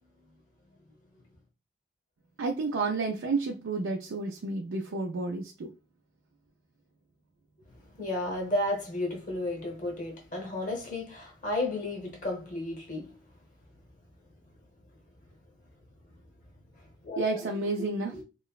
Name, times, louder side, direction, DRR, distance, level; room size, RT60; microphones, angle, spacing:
voice 1, 2.4-5.7 17.2-18.2, right 3 dB, 85° right, 0.4 m, -31 dB
voice 2, 7.9-13.2 17.0-17.2 18.1-18.2, left 1 dB, 40° left, 0.8 m, -33 dB
3.0 x 2.0 x 2.3 m
head